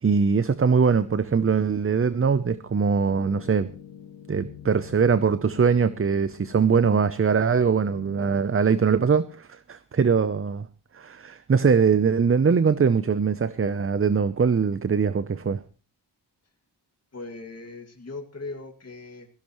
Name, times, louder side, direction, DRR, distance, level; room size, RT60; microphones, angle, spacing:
voice 1, 0.0-3.7 4.3-10.7 10.9-15.6, right 6 dB, 30° right, 0.7 m, -22 dB
sound 1, 1.2-8.4, left 8 dB, 85° left, 1.5 m, -46 dB
voice 2, 17.1-19.3, left 3 dB, 40° left, 2.3 m, -39 dB
17.5 x 16.0 x 3.1 m
cardioid pair, 55°, 41 cm